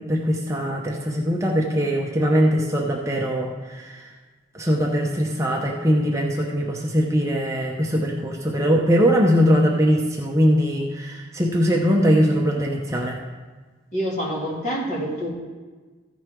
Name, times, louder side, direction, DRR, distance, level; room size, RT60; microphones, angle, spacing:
voice 1, 0.0-4.1 4.5-13.2, equal, 15° right, -1 dB, 0.7 m, -21 dB
voice 2, 13.9-15.3, equal, 40° left, -6 dB, 3.0 m, -26 dB
14.5 x 5.5 x 4.5 m, 1.4 s
head